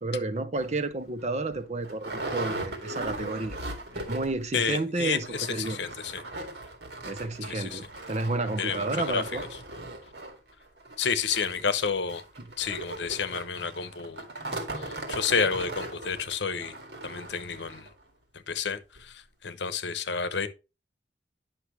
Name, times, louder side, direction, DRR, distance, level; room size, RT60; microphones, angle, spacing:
voice 1, 0.0-3.6 3.9-5.8 7.0-9.5, right 2 dB, 35° right, 0.7 m, -31 dB
sound 1, 0.6-0.7 1.2-1.3 1.5-4.5 4.7-4.8 5.1-17.9 18.5-18.6 19.0-19.1, right 2 dB, 70° right, 2.1 m, -38 dB
voice 2, 4.5-6.2 7.5-7.8 8.6-9.2 11.0-12.2 12.6-14.2 14.7-16.7 17.0-17.9 18.5-20.5, left 6 dB, 75° left, 0.9 m, -30 dB
10.0 x 5.9 x 3.1 m
head